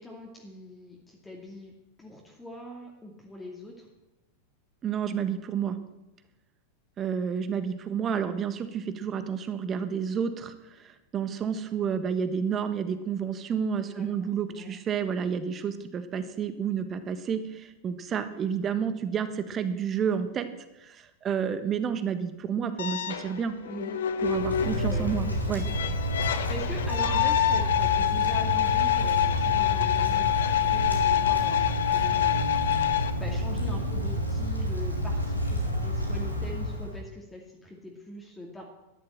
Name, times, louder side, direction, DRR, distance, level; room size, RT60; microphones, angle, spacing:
voice 1, 0.0-1.7 2.0-3.9 13.8-14.1 14.5-14.7 23.7-24.0 24.9-25.2 26.2-32.4 33.2-38.7, left 1 dB, 10° left, -1 dB, 2.5 m, -42 dB
voice 2, 4.8-5.8 7.0-20.5 20.8-23.6 24.2-25.6, right 7 dB, 25° right, 10 dB, 1.5 m, -30 dB
sound 1, 22.8-33.1, left 11 dB, 60° left, 1.0 m, -26 dB
Wind, 24.2-37.0, equal, 90° left, 2.9 m, -30 dB
13.0 x 11.0 x 7.7 m, 1.0 s
figure-of-eight pair, 90°, 0 cm